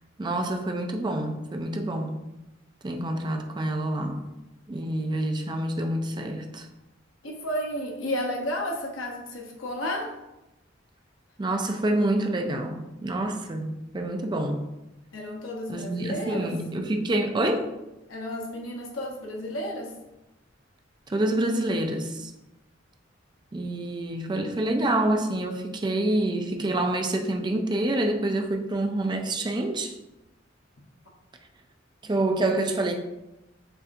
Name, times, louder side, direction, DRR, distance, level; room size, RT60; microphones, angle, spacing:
voice 1, 0.2-2.1 2.8-4.2 4.7-6.7 11.4-14.7 15.7-17.7 21.1-22.3 23.5-29.9 32.0-33.0, right 1 dB, 25° right, 4 dB, 0.4 m, -27 dB
voice 2, 7.2-10.1 15.1-16.5 18.1-19.9, left 1 dB, 85° left, 1 dB, 0.9 m, -32 dB
6.8 x 2.5 x 2.6 m, 0.95 s
head